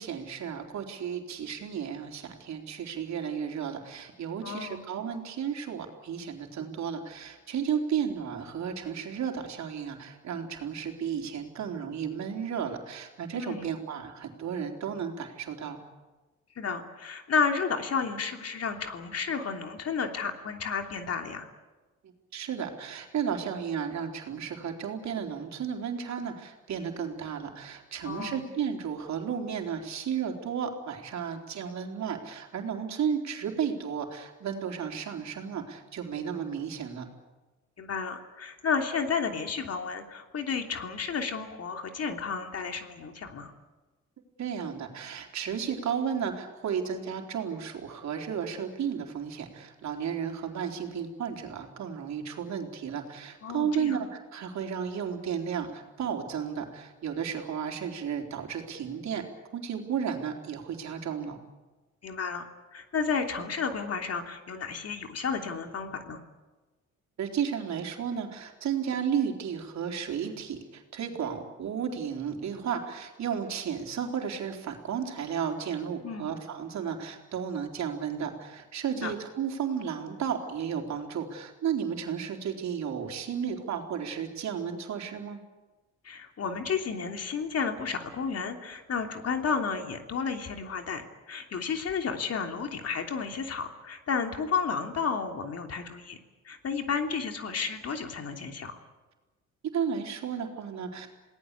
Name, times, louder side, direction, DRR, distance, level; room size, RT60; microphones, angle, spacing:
voice 1, 0.0-15.8 22.3-37.1 44.4-59.2 59.5-61.4 67.2-85.4 99.7-101.1, right 7 dB, 65° right, 3 dB, 4.0 m, -33 dB
voice 2, 4.4-4.8 13.3-13.7 16.5-21.5 28.0-28.4 37.8-43.5 53.4-54.0 62.0-66.2 76.0-76.3 79.0-79.1 86.0-96.2 96.4-98.8, left 5 dB, 55° left, 5 dB, 3.1 m, -32 dB
28.0 x 18.5 x 8.4 m, 1.2 s
cardioid pair, 90°, 30 cm